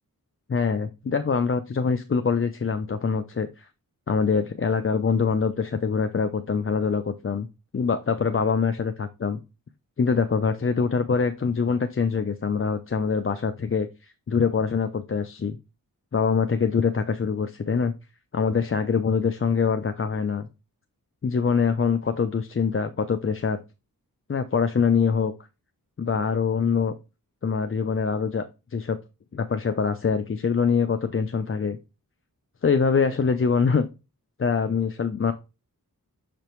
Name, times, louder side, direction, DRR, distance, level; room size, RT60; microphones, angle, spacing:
voice 1, 0.5-3.7 4.1-7.5 7.7-9.4 10.0-15.6 16.1-17.9 18.3-20.5 21.2-23.6 24.3-25.3 26.0-26.9 27.4-28.4 28.7-29.0 29.3-31.8 32.6-33.8 34.4-35.3, left 5 dB, 35° left, 8 dB, 0.5 m, -24 dB
6.6 x 5.1 x 3.0 m, 0.28 s
wide cardioid pair, 75°, 36 cm